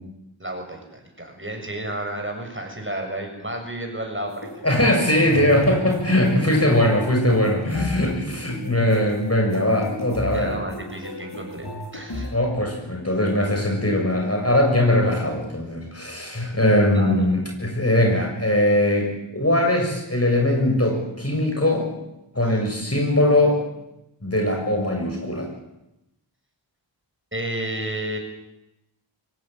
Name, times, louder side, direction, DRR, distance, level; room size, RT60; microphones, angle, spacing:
voice 1, 0.4-5.1 10.3-11.7 11.9-12.3 16.9-17.3 27.3-28.2, right 1 dB, 25° right, 3 dB, 7.2 m, -32 dB
sound 1, 4.3-12.3, left 1 dB, 60° left, 7.6 m, -35 dB
voice 2, 4.6-10.6 12.3-21.9 22.3-23.6 24.2-25.5, left 1 dB, 30° left, 2 dB, 7.1 m, -21 dB
23.5 x 17.5 x 9.2 m, 0.89 s
wide cardioid pair, 50°, 45 cm